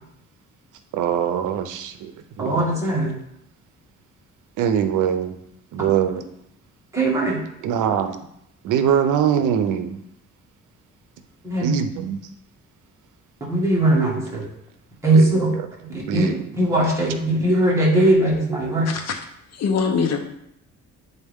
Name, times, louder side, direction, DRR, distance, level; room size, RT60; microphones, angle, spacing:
voice 1, 0.9-2.7 4.6-5.4 5.7-6.2 7.6-8.2 8.6-10.0 11.6-12.2 15.1-15.4 16.1-16.5, right 8 dB, 90° right, 9 dB, 0.6 m, -23 dB
voice 2, 2.4-3.2 5.8-5.9 6.9-7.4 11.4-11.7 13.5-14.5 15.0-15.5 15.9-18.9, right 1 dB, 10° right, -5 dB, 1.9 m, -20 dB
voice 3, 18.9-19.2 19.5-20.2, left 5 dB, 60° left, 5 dB, 0.9 m, -23 dB
8.4 x 4.1 x 3.5 m, 0.77 s
cardioid pair, 155°, 30 cm